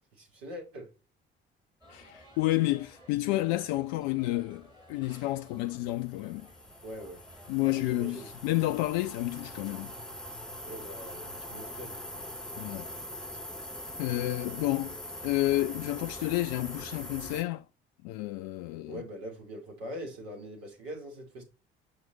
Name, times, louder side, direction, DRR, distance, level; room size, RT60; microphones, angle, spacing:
voice 1, 0.2-0.9 6.8-7.2 7.6-8.3 10.7-12.0 18.9-21.4, equal, 65° right, 2.6 m, -42 dB
sound 1, 1.8-17.3, equal, 15° right, 2.9 m, -57 dB
voice 2, 1.9-6.5 7.5-9.9 12.6-12.9 14.0-14.9 15.2-17.6 18.0-19.0, left 17 dB, 55° left, 0.4 m, -30 dB
sound 2, 5.2-17.4, left 1 dB, ahead, 1.1 m, -43 dB
6.3 x 4.7 x 3.9 m
figure-of-eight pair, 50°, 30 cm